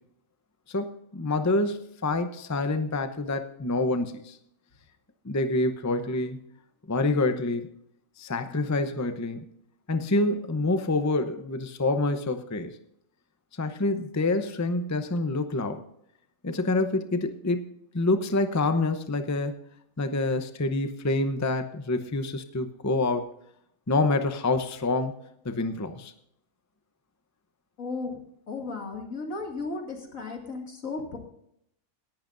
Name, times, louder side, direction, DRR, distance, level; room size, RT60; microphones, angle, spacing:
voice 1, 0.7-4.4 5.2-6.4 6.9-7.7 8.2-9.4 9.9-12.8 13.5-15.8 16.4-19.5 20.0-23.3 23.9-25.1 25.4-26.1, left 2 dB, 15° left, 8 dB, 0.7 m, -27 dB
voice 2, 27.8-28.2 28.5-31.2, left 3 dB, 75° left, 2 dB, 2.8 m, -35 dB
17.5 x 11.5 x 2.6 m, 0.72 s
omnidirectional pair, 1.4 m